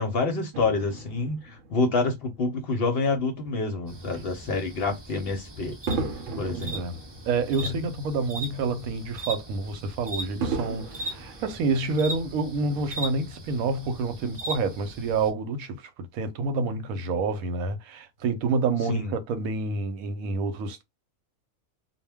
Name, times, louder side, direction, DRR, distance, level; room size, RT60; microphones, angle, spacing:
voice 1, 0.0-5.8 6.4-6.8 7.6-7.7 18.9-19.1, left 3 dB, 55° left, 0.7 m, -27 dB
Fireworks, 0.5-3.1 3.8-4.0 5.9-8.4 8.7-8.8 10.4-12.3 13.0-13.1, right 4 dB, 70° right, 0.9 m, -36 dB
sound 1, 3.9-15.3, equal, 25° right, 0.6 m, -39 dB
voice 2, 6.5-6.9 7.3-20.8, right 4 dB, 90° right, 1.0 m, -28 dB
2.2 x 2.2 x 3.3 m
omnidirectional pair, 1.4 m